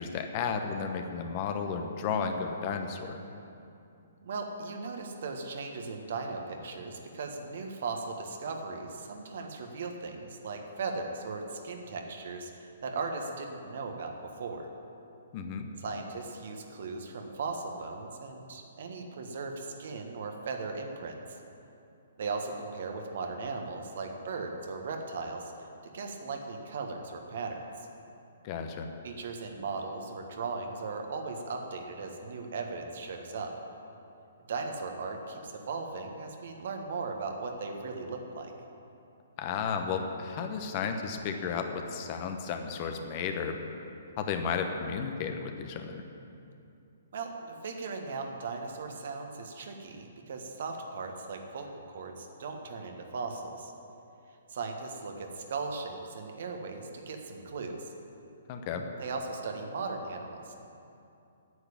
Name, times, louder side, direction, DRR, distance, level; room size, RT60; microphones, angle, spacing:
voice 1, 0.0-3.2 15.3-15.7 28.4-28.9 39.4-43.6 44.2-46.0 58.5-58.9, left 6 dB, 35° left, 5 dB, 1.1 m, -33 dB
voice 2, 4.2-14.1 14.4-14.7 15.8-21.2 22.2-25.5 25.9-27.6 29.0-33.6 34.5-38.5 47.1-51.7 51.9-53.7 54.5-57.9 59.0-60.5, right 4 dB, 55° right, 3 dB, 1.5 m, -37 dB
9.5 x 8.2 x 8.7 m, 2.7 s
figure-of-eight pair, 125°, 0 cm